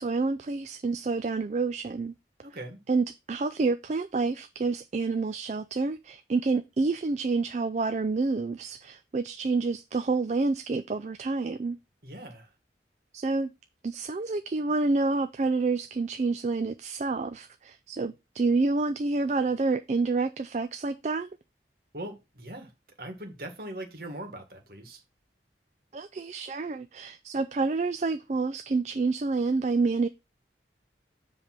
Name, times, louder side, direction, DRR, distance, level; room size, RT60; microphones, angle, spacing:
voice 1, 0.0-2.1 2.9-11.8 13.1-13.5 13.8-21.3 25.9-30.1, right 3 dB, 40° right, 0.4 m, -28 dB
voice 2, 2.4-2.8 12.0-12.5 21.9-22.7 23.0-25.0, right 1 dB, 55° right, 1.8 m, -40 dB
7.3 x 3.4 x 6.0 m
head